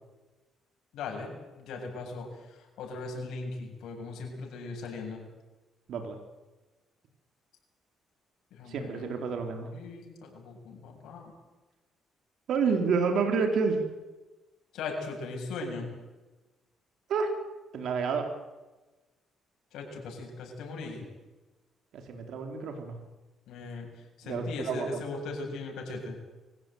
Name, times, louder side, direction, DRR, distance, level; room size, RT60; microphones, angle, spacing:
voice 1, 0.9-2.3 2.8-5.2 8.6-9.1 9.7-11.3 14.7-15.9 19.7-21.0 23.5-23.9 24.3-26.2, left 3 dB, 80° left, 1 dB, 7.8 m, -38 dB
voice 2, 8.7-9.7 12.5-13.8 17.1-17.3 17.7-18.3 21.9-23.0 24.2-25.0, right 5 dB, 70° right, 4 dB, 3.9 m, -29 dB
24.5 x 16.0 x 9.4 m, 1.2 s
cardioid pair, 90°, 0 cm